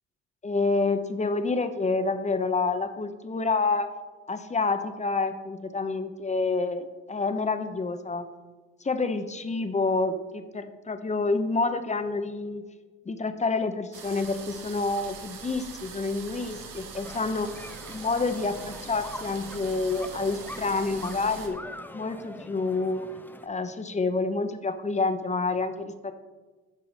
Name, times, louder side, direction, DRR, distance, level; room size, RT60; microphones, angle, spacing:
voice 1, 0.4-3.9 4.3-8.3 8.8-12.6 13.1-17.5 17.9-21.6 21.9-23.1 23.4-25.9, left 3 dB, 20° left, 9 dB, 0.9 m, -28 dB
sound 1, 13.9-21.5, right 6 dB, 85° right, 1.3 m, -43 dB
sound 2, 17.0-23.5, left 1 dB, 5° left, 0.5 m, -44 dB
8.4 x 5.9 x 5.1 m, 1.3 s
supercardioid pair, 65°, 33 cm